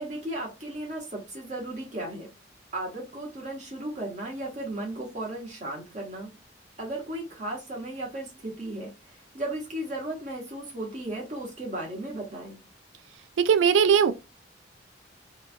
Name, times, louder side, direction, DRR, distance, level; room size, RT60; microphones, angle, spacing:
voice 1, 0.0-2.3 2.7-6.3 6.8-12.6, right 1 dB, 40° right, 0.8 m, -35 dB
voice 2, 13.4-14.1, right 7 dB, 85° right, 0.4 m, -19 dB
3.0 x 2.2 x 2.4 m
head